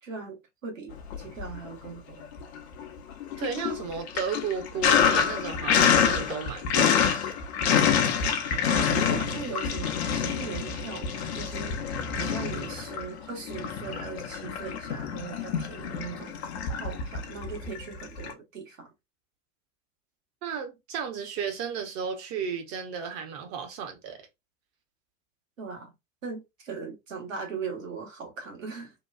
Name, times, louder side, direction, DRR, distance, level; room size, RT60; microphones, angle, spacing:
voice 1, 0.0-2.2 8.7-11.8 12.2-16.4 16.8-18.9 25.6-25.9 26.2-28.9, right 5 dB, 75° right, 1.2 m, -39 dB
Sink (filling or washing), 1.0-1.9 2.2-18.3, left 7 dB, 55° left, 0.7 m, -27 dB
voice 2, 3.4-7.1 20.4-24.2, right 6 dB, 40° right, 0.9 m, -34 dB
3.0 x 2.2 x 2.2 m
figure-of-eight pair, 90°, 40 cm